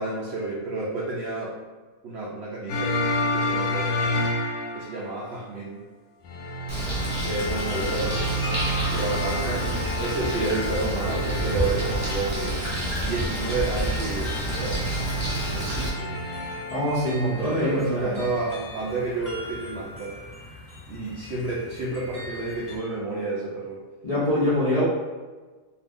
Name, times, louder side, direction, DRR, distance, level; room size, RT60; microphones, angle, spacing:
voice 1, 0.0-1.6 2.0-3.0 3.3-4.0 4.7-5.8 7.2-8.3 8.9-12.7 13.0-14.8 15.5-16.2 17.4-20.1 20.9-23.8, right 3 dB, 75° right, -4 dB, 0.6 m, -30 dB
sound 1, 2.7-5.2 6.2-16.8, left 1 dB, 70° left, 1.0 m, -30 dB
Bird, 6.7-15.9, right 1 dB, 15° right, 0.7 m, -30 dB
sound 2, 8.1-22.8, left 1 dB, 25° left, 0.8 m, -41 dB
voice 2, 16.7-18.3 24.0-24.8, left 1 dB, 50° left, -10 dB, 0.4 m, -24 dB
2.7 x 2.4 x 3.5 m, 1.3 s
omnidirectional pair, 1.7 m